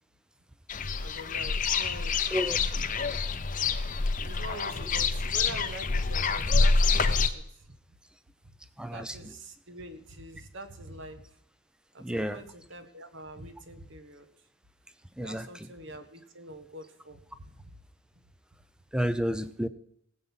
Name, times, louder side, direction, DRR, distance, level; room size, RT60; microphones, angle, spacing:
sound 1, 0.7-7.3, left 4 dB, 35° left, 0.7 m, -27 dB
voice 1, 1.0-2.3 4.2-7.7 8.9-11.2 11.9-14.3 15.2-17.8, right 1 dB, 55° right, 1.4 m, -45 dB
voice 2, 8.8-9.3 12.0-12.4 15.2-15.7 18.9-19.7, equal, 5° right, 0.5 m, -31 dB
18.5 x 7.8 x 5.6 m
head